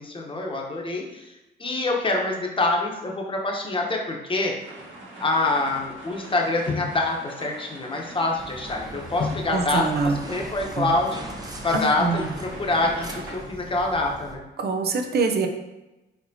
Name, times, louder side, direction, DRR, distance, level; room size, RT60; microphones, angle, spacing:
voice 1, 0.0-1.3 1.6-4.5 5.2-11.1 11.4-14.4, left 2 dB, 25° left, 0 dB, 1.0 m, -26 dB
sound 1, 4.6-13.4, right 2 dB, 70° right, 1.4 m, -42 dB
sound 2, 4.8-5.0 5.3-11.8, left 5 dB, 40° left, 0.4 m, -38 dB
sound 3, 8.4-14.4, right 1 dB, 20° right, 0.7 m, -40 dB
voice 2, 9.5-10.2 10.8-10.9 11.7-12.3 14.6-15.5, right 4 dB, 55° right, 5 dB, 0.7 m, -24 dB
4.4 x 4.2 x 2.8 m, 1.0 s
cardioid pair, 90°, 20 cm